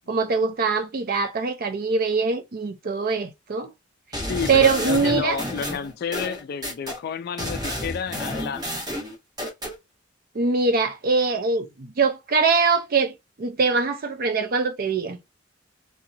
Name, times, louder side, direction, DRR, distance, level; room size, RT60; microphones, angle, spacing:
voice 1, 0.1-3.7 4.5-5.4 10.3-15.2, right 4 dB, 50° right, 0.5 m, -23 dB
sound 1, 4.1-7.0 7.4-9.7, equal, 20° right, 1.1 m, -31 dB
voice 2, 4.2-8.6, left 6 dB, 50° left, 0.3 m, -30 dB
2.7 x 2.2 x 2.6 m
head